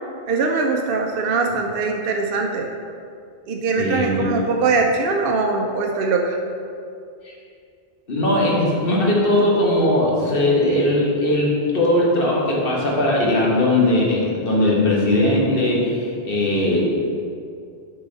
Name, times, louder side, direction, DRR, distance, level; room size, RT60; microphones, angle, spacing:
voice 1, 0.3-2.7 3.5-6.4, right 4 dB, 70° right, 1 dB, 0.7 m, -21 dB
voice 2, 3.8-4.3 7.2-7.3 8.1-16.8, left 1 dB, 60° left, -3 dB, 1.4 m, -19 dB
6.7 x 4.8 x 3.9 m, 2.4 s
omnidirectional pair, 1.1 m